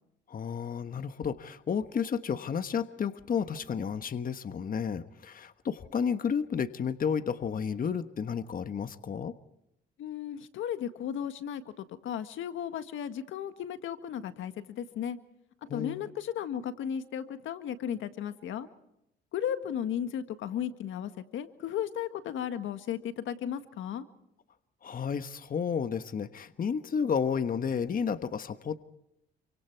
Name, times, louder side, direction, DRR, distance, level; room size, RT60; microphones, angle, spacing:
voice 1, 0.3-9.3 15.7-16.0 24.8-28.8, left 6 dB, 45° left, 10 dB, 1.3 m, -32 dB
voice 2, 10.0-15.2 15.7-18.7 19.3-24.0, left 9 dB, 80° left, 10 dB, 1.7 m, -35 dB
28.5 x 25.0 x 4.6 m, 0.83 s
cardioid pair, 90°, 20 cm